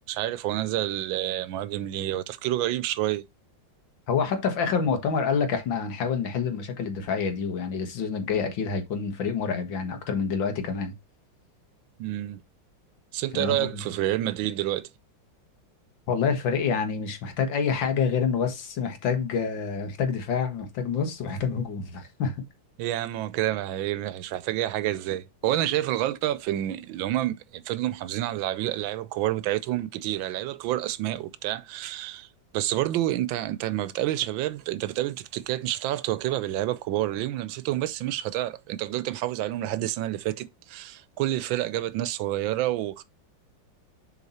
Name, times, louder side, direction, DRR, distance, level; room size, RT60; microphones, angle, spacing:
voice 1, 0.1-3.2 12.0-12.4 13.1-14.9 22.8-32.3 32.5-43.0, right 14 dB, 90° right, 1.4 m, -28 dB
voice 2, 4.1-10.9 13.3-13.8 16.1-22.3 25.6-25.7, left 6 dB, 80° left, 2.1 m, -27 dB
7.1 x 4.4 x 4.1 m
omnidirectional pair, 2.1 m